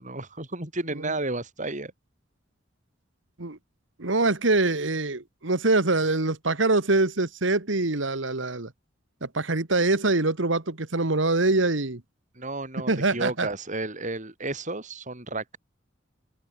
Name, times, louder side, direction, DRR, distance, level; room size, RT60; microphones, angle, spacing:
voice 1, 0.0-1.9 12.3-15.6, right 2 dB, 40° right, 6.2 m, -32 dB
voice 2, 4.0-8.7 9.2-12.0 12.9-13.5, right 2 dB, 75° right, 1.9 m, -24 dB
open air
head